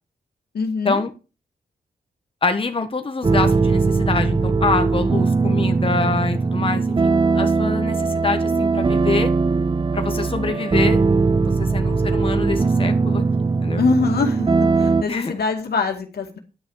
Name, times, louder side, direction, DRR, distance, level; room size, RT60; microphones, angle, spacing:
voice 1, 0.5-1.0 13.8-16.4, left 4 dB, 80° left, 4 dB, 2.2 m, -23 dB
voice 2, 2.4-9.3 9.9-11.0 11.4-13.2 13.6-13.8 15.1-15.4, left 4 dB, 35° left, 6 dB, 1.5 m, -25 dB
sound 1, 3.2-15.0, right 4 dB, 30° right, 0.7 m, -20 dB
11.0 x 6.0 x 6.5 m, 0.32 s
cardioid pair, 80°, 16 cm